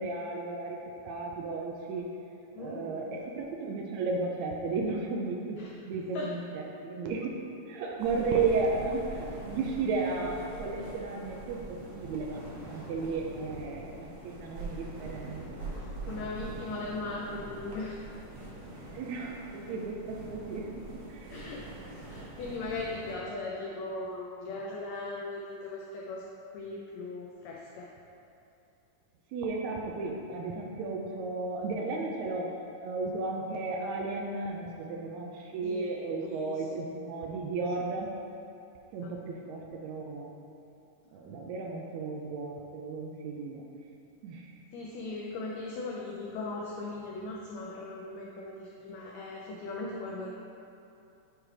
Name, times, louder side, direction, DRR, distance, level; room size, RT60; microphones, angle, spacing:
voice 1, 0.0-2.1 2.6-5.6 5.9-12.4 12.7-15.6 18.9-21.3 29.3-38.1 38.9-40.3 41.1-43.6 44.2-44.5, right 3 dB, 85° right, 0 dB, 1.6 m, -34 dB
voice 2, 2.5-3.0 5.6-5.7 6.1-6.3 10.7-10.9 15.7-18.1 21.3-27.9 35.6-35.9 36.2-36.7 39.0-39.2 44.7-50.3, left 2 dB, 85° left, -3 dB, 1.6 m, -39 dB
sound 1, 8.0-23.1, right 2 dB, 55° right, 1.7 m, -43 dB
9.0 x 3.2 x 4.8 m, 2.7 s
omnidirectional pair, 3.8 m